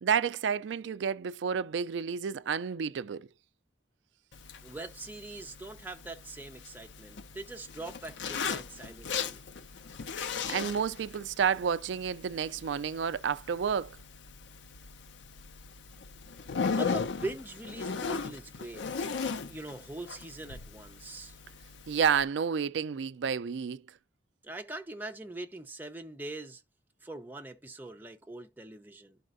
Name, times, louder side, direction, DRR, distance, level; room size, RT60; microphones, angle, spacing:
voice 1, 0.0-3.3 10.5-14.0 21.9-23.8, right 7 dB, 80° right, 0.4 m, -30 dB
Zipper (clothing), 4.3-22.2, left 5 dB, 85° left, 0.6 m, -38 dB
voice 2, 4.6-9.4 16.7-18.8 19.5-21.4 24.4-26.6 27.0-29.2, right 2 dB, 10° right, 0.7 m, -42 dB
12.0 x 4.2 x 2.5 m
head